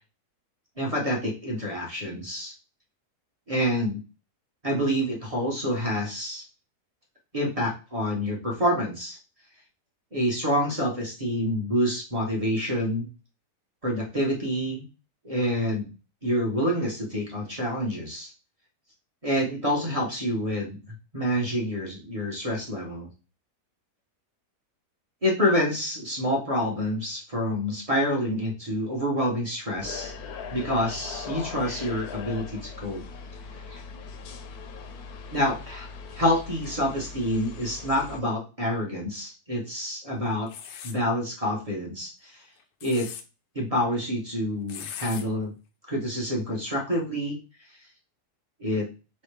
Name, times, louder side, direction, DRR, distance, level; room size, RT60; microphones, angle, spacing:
voice 1, 0.8-2.5 3.5-4.0 4.6-6.4 7.3-9.2 10.1-13.1 13.8-14.8 15.2-15.9 16.2-18.3 19.2-20.8 21.1-23.1 25.2-30.1 30.5-33.0 33.7-33.8 35.3-40.5 40.8-42.4 42.8-43.1 43.5-45.5 45.9-47.4 48.6-48.9, equal, 25° right, -1 dB, 0.9 m, -27 dB
sound 1, 29.8-38.2, left 5 dB, 70° left, 1.1 m, -40 dB
sound 2, 40.5-41.0 42.6-43.2 44.7-45.2, left 8 dB, 90° left, 1.2 m, -39 dB
4.4 x 3.2 x 3.3 m, 0.32 s
omnidirectional pair, 1.8 m